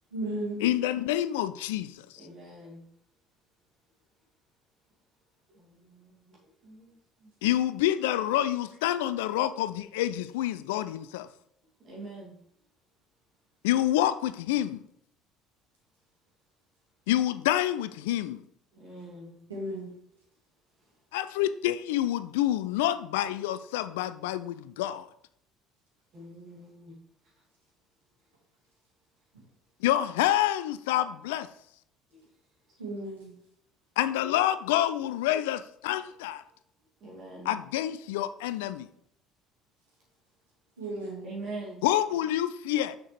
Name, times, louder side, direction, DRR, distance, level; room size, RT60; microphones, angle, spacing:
voice 1, 0.1-0.7 19.5-19.9 32.8-33.4 40.8-41.3, right 1 dB, 90° right, -4 dB, 1.8 m, -34 dB
voice 2, 0.6-1.9 7.4-11.3 13.6-14.8 17.1-18.4 21.1-25.1 29.8-31.5 34.0-36.4 37.5-38.9 41.8-43.0, left 13 dB, 75° left, 14 dB, 0.3 m, -27 dB
voice 3, 2.1-2.8 5.5-7.3 8.4-8.6 11.8-12.3 18.7-19.4 26.1-26.9 32.1-32.3 37.0-37.5 41.2-41.8, right 2 dB, 50° right, -5 dB, 2.4 m, -44 dB
6.3 x 5.8 x 3.2 m, 0.71 s
hypercardioid pair, 60°, 0 cm